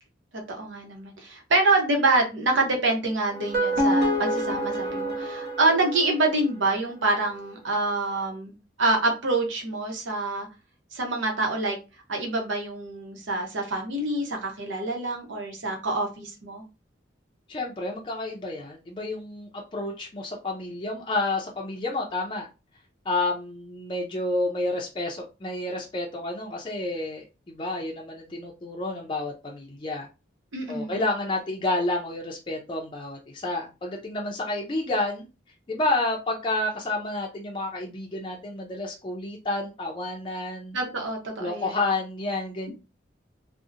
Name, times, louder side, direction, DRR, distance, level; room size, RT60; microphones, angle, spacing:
voice 1, 0.5-10.5 10.9-11.8 12.1-16.6 30.5-30.9 40.7-41.8, right 2 dB, 85° right, 2 dB, 0.8 m, -26 dB
sound 1, 3.3-6.5, equal, 55° right, 0.7 m, -27 dB
voice 2, 17.5-22.5 23.1-30.1 30.7-35.2 35.7-40.8 41.4-42.7, left 2 dB, 25° left, -1 dB, 0.4 m, -30 dB
2.7 x 2.0 x 2.4 m, 0.29 s
head